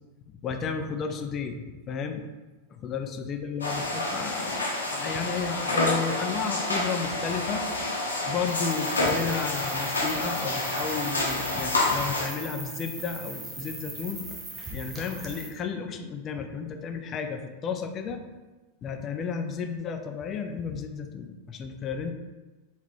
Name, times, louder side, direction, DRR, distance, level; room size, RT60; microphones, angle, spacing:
voice 1, 0.3-2.2 2.7-7.7 8.3-14.3 14.7-18.2 18.8-22.1, left 6 dB, 30° left, 6 dB, 0.3 m, -33 dB
sound 1, 3.6-12.3, left 2 dB, 75° left, 0.7 m, -28 dB
sound 2, 8.5-15.5, right 3 dB, 20° right, 0.6 m, -40 dB
3.7 x 2.3 x 3.1 m, 1.2 s
figure-of-eight pair, 90°, 0 cm